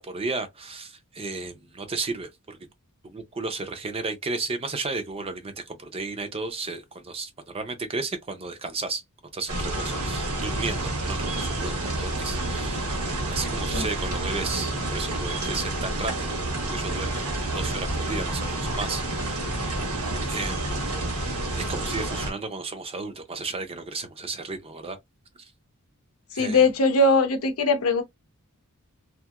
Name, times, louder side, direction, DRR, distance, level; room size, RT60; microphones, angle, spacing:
voice 1, 0.0-2.6 3.0-9.0 9.3-12.9 13.3-16.3 16.6-19.7 20.3-20.6 21.5-25.0 25.4-25.5 26.3-26.7, right 3 dB, 25° right, 0.5 m, -33 dB
sound 1, 9.5-22.3, right 2 dB, 90° right, 1.2 m, -29 dB
voice 2, 26.3-28.0, left 3 dB, 70° left, 0.7 m, -20 dB
2.8 x 2.6 x 2.3 m
head